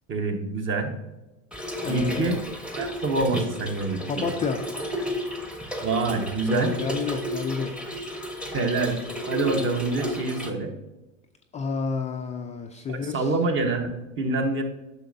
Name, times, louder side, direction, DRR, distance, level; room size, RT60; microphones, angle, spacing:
voice 1, 0.1-0.9 1.9-2.4 2.7-4.2 5.8-6.8 8.5-9.0 9.3-10.7 12.9-14.6, right 3 dB, 30° right, 5 dB, 1.2 m, -26 dB
Trickle dribble / Fill (with liquid), 1.5-10.5, equal, 5° right, 0.9 m, -33 dB
voice 2, 1.8-2.3 4.1-4.6 6.5-7.8 8.2-8.3 11.5-13.3, left 5 dB, 20° left, 3 dB, 0.4 m, -30 dB
9.7 x 6.4 x 2.7 m, 1.0 s
hypercardioid pair, 95°, 39 cm